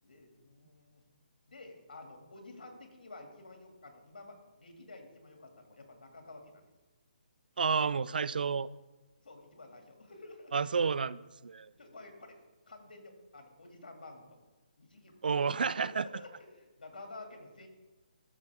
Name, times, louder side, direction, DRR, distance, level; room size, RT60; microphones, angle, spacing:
voice 1, 0.0-1.0 1.5-6.6 9.2-10.8 11.6-12.3 12.7-14.4 14.8-17.7, left 2 dB, 85° left, 3 dB, 2.2 m, -51 dB
voice 2, 7.6-8.7 10.5-11.7 15.2-16.1, right 5 dB, 80° right, 19 dB, 0.3 m, -30 dB
13.5 x 6.9 x 3.5 m, 1.2 s
hypercardioid pair, 160°, 5 cm